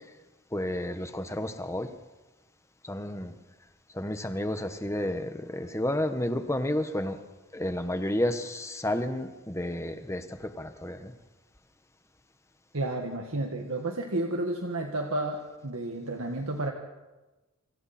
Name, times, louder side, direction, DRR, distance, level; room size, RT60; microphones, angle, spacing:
voice 1, 0.5-1.9 2.8-3.3 3.9-7.2 7.5-11.1, left 1 dB, 15° left, 8 dB, 1.3 m, -31 dB
voice 2, 12.7-16.7, right 2 dB, 70° right, 2 dB, 1.9 m, -31 dB
28.5 x 25.5 x 4.4 m, 1.1 s
head